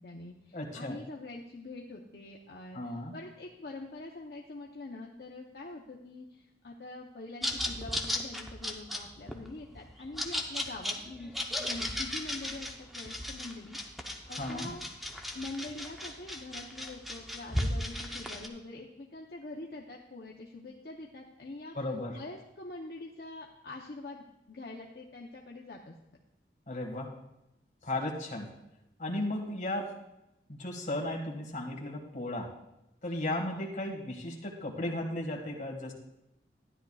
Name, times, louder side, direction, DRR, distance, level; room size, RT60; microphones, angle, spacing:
voice 1, 0.0-14.8 15.3-21.7 22.1-25.9, left 2 dB, 60° left, -1 dB, 0.8 m, -44 dB
voice 2, 0.5-1.0 2.7-3.1 14.4-14.7 21.7-22.2 26.7-27.2 27.8-28.5 29.0-30.0 30.5-32.5 33.0-35.9, left 1 dB, 45° left, 0 dB, 1.8 m, -35 dB
sound 1, 7.4-18.5, left 1 dB, ahead, 0.7 m, -36 dB
13.0 x 10.5 x 2.4 m, 0.89 s
head